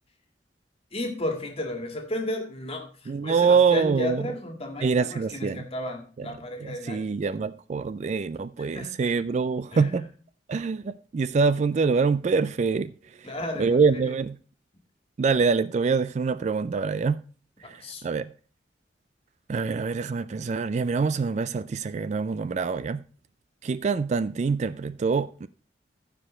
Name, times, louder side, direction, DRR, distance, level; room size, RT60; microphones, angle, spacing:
voice 1, 0.9-7.1 8.6-9.2 9.7-10.1 13.2-13.8 14.1-14.2 17.6-18.0, left 1 dB, 35° left, 1.9 m, -33 dB
voice 2, 3.1-4.2 4.8-5.6 6.2-6.3 6.6-10.0 10.5-13.3 13.6-14.4 15.2-17.2 17.6-18.3 19.5-23.0 23.6-25.5, right 5 dB, 40° right, 0.3 m, -25 dB
14.5 x 4.9 x 4.3 m
head